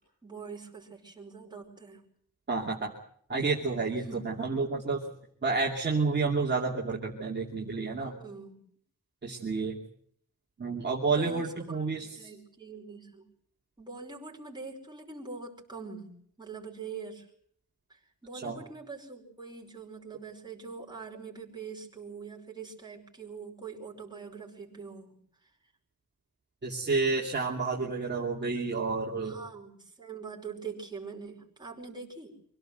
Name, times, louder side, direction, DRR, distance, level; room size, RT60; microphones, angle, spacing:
voice 1, 0.2-2.0 4.1-4.7 8.0-8.6 11.1-13.3 13.8-17.3 17.9-25.5 29.2-32.4, right 4 dB, 15° right, -1 dB, 5.3 m, -43 dB
voice 2, 2.5-2.9 3.3-5.0 5.4-8.1 9.2-9.8 10.6-12.3 18.3-18.6 26.6-29.4, right 4 dB, 30° right, -3 dB, 2.7 m, -30 dB
25.5 x 17.5 x 8.0 m, 0.64 s
wide cardioid pair, 175°, 33 cm